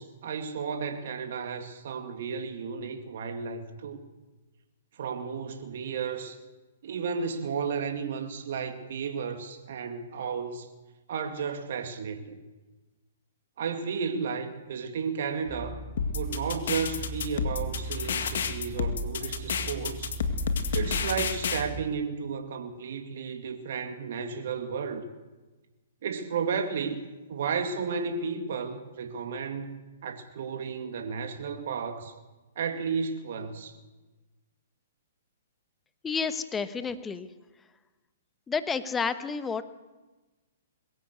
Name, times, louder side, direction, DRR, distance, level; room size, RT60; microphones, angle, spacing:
voice 1, 0.0-4.0 5.0-6.4 6.8-10.7 11.1-12.4 13.6-15.8 16.1-20.1 20.7-25.0 26.0-27.0 27.3-32.1 32.6-33.8, right 6 dB, 60° right, 2.2 m, -33 dB
sound 1, 15.4-21.8, right 2 dB, 5° right, 4.6 m, -39 dB
sound 2, 16.0-21.6, left 6 dB, 65° left, 2.0 m, -30 dB
voice 2, 36.0-37.3 38.5-39.6, left 5 dB, 15° left, 1.2 m, -30 dB
22.0 x 15.5 x 8.1 m
hypercardioid pair, 130°, 0 cm